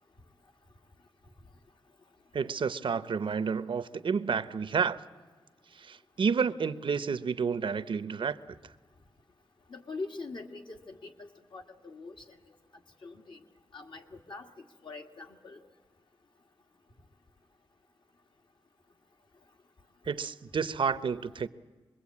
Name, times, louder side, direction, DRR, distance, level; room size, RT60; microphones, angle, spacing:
voice 1, 2.3-5.0 5.7-8.7 20.0-21.5, right 6 dB, 65° right, 0.7 m, -30 dB
voice 2, 9.7-12.4 13.0-13.4 13.7-15.6, left 3 dB, 60° left, 1.9 m, -43 dB
25.0 x 21.5 x 8.5 m
wide cardioid pair, 110°, 9 cm